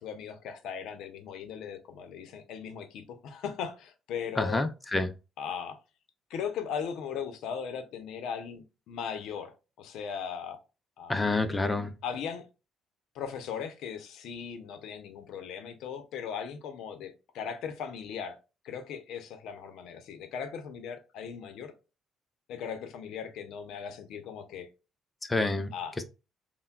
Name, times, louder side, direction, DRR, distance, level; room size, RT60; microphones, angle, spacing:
voice 1, 0.0-4.6 5.4-5.8 6.3-10.6 11.0-11.2 12.0-12.4 13.1-18.4 18.6-21.7 22.5-24.7 25.7-26.0, left 7 dB, 75° left, 0.7 m, -38 dB
voice 2, 4.4-5.1 11.1-11.9 25.3-25.7, left 2 dB, 15° left, 0.5 m, -28 dB
5.7 x 2.2 x 2.2 m
cardioid pair, 135°, 0 cm